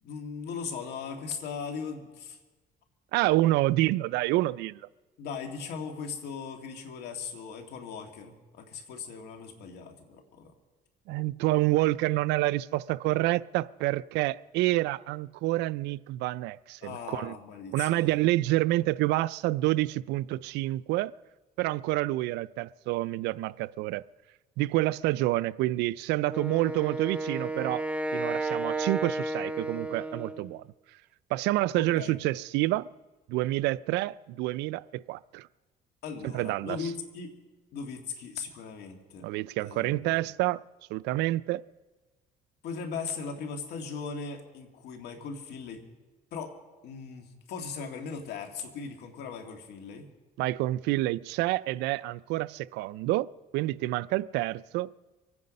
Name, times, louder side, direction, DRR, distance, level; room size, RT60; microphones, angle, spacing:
voice 1, 0.0-2.4 3.4-3.5 5.2-10.5 16.8-18.2 31.8-32.2 36.0-37.3 37.7-39.3 39.6-40.2 42.6-45.8 46.3-46.5 46.8-50.1, left 5 dB, 80° left, 2.2 m, -39 dB
voice 2, 3.1-4.8 11.1-17.4 17.7-21.1 21.6-24.0 24.6-27.9 28.1-30.6 31.3-32.9 33.3-35.5 36.2-36.9 39.2-40.6 40.9-41.6 50.4-54.9, right 17 dB, 90° right, 0.4 m, -28 dB
Wind instrument woodwind instrument, 26.3-30.5, right 2 dB, 5° right, 0.9 m, -32 dB
24.5 x 9.6 x 5.3 m
cardioid pair, 110°, 17 cm